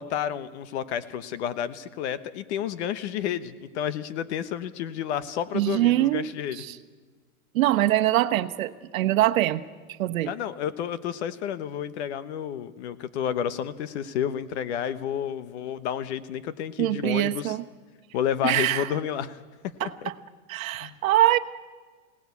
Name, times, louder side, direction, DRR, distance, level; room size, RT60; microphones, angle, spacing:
voice 1, 0.0-6.6 10.2-17.6 18.1-19.4 19.8-20.1 20.8-21.0, left 9 dB, 50° left, 14 dB, 1.1 m, -30 dB
voice 2, 5.5-6.2 6.6-6.8 7.5-9.6 9.9-10.3 16.8-17.6 18.4-18.9 19.8-20.1 20.5-21.4, right 15 dB, 65° right, 8 dB, 1.2 m, -23 dB
26.0 x 18.0 x 8.4 m, 1.4 s
supercardioid pair, 160°, 43 cm